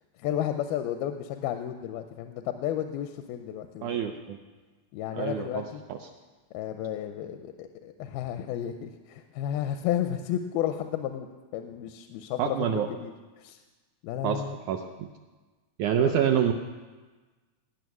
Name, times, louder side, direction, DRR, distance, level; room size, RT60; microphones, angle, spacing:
voice 1, 0.2-4.0 4.9-5.8 6.5-11.3 11.5-13.1 13.4-13.6 14.0-14.6 16.0-16.2, left 10 dB, 90° left, 7 dB, 2.5 m, -32 dB
voice 2, 3.8-4.4 5.1-5.6 5.9-6.1 12.4-12.9 14.2-15.1 15.8-16.5, right 9 dB, 80° right, 5 dB, 1.7 m, -27 dB
17.5 x 6.5 x 9.3 m, 1.3 s
omnidirectional pair, 4.3 m